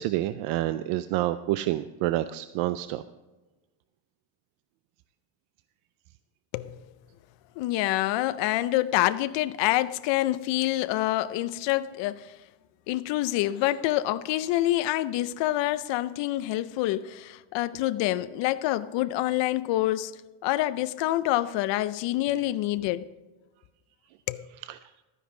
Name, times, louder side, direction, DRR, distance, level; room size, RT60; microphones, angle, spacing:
voice 1, 0.0-3.0 24.7-24.8, right 15 dB, 90° right, 0.5 m, -28 dB
voice 2, 7.6-12.3 12.9-20.2 20.4-23.0 24.3-24.4, left 15 dB, 65° left, 0.6 m, -27 dB
12.5 x 9.9 x 3.8 m
cardioid pair, 175°, 48 cm